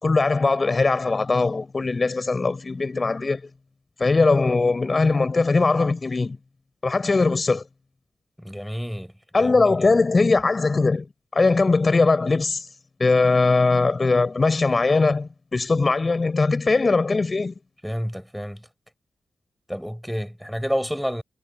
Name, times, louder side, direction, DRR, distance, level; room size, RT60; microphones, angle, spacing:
voice 1, 0.0-3.4 4.0-6.4 6.8-7.6 9.3-11.1 11.3-12.7 13.0-17.5, left 3 dB, 30° left, 5.6 m, -20 dB
voice 2, 8.4-9.1 9.4-9.5 17.8-18.6 19.7-21.2, equal, ahead, 7.1 m, -29 dB
wide cardioid pair, 125°, 0 cm